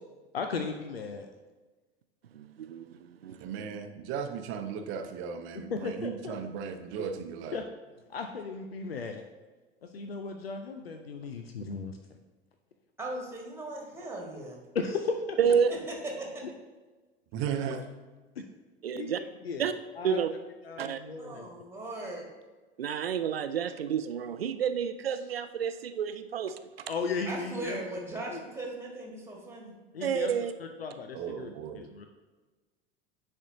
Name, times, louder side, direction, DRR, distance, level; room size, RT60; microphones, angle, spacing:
voice 1, 0.3-1.3 5.7-6.4 7.0-7.1 7.5-7.6 8.1-9.2 9.8-12.0 14.7-15.4 18.4-18.5 18.9-19.7 20.0-20.2 20.6-21.5 26.9-27.8 28.3-28.4 29.9-30.3 30.6-31.5 31.8-32.1, left 4 dB, 85° left, 5 dB, 0.5 m, -36 dB
voice 2, 2.3-3.7 15.4-15.7 18.8-19.2 19.6-19.7 20.0-20.3 20.8-21.0 22.8-26.6 26.9-27.0 30.0-30.5, right 7 dB, 80° right, 11 dB, 0.4 m, -30 dB
voice 3, 3.4-7.6 17.3-17.8 31.1-31.8, right 7 dB, 40° right, 7 dB, 0.7 m, -36 dB
voice 4, 13.0-14.6 15.7-16.3 21.2-22.3 27.3-29.7, right 2 dB, 10° right, -1 dB, 1.7 m, -38 dB
9.9 x 4.3 x 2.7 m, 1.3 s
figure-of-eight pair, 75°, 29 cm